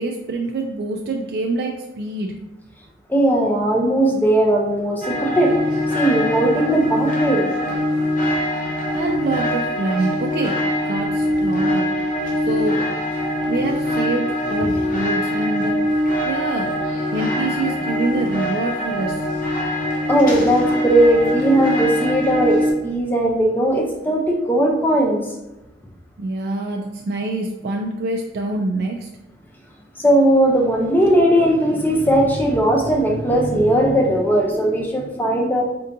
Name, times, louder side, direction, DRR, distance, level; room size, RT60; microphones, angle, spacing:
voice 1, 0.0-2.3 8.9-11.9 12.5-12.8 13.4-15.8 16.2-16.7 17.1-19.2 26.2-29.1, right 2 dB, 60° right, 1 dB, 0.3 m, -25 dB
voice 2, 3.1-5.6 5.9-7.5 20.1-25.3 30.0-35.6, right 1 dB, 10° left, 0 dB, 0.5 m, -18 dB
sound 1, 5.0-22.7, left 1 dB, 45° left, 0.7 m, -22 dB
4.4 x 2.6 x 2.6 m, 0.98 s
head